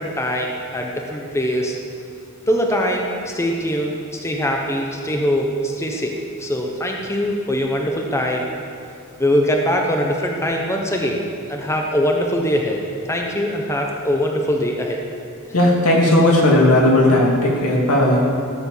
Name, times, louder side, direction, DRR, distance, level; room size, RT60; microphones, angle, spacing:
voice 1, 0.0-1.8 2.5-8.4 9.2-11.2 11.5-12.8 13.1-15.0, equal, 10° left, 1 dB, 0.9 m, -22 dB
voice 2, 15.5-18.2, left 1 dB, 80° left, -2 dB, 2.7 m, -15 dB
15.5 x 7.0 x 7.1 m, 2.5 s
head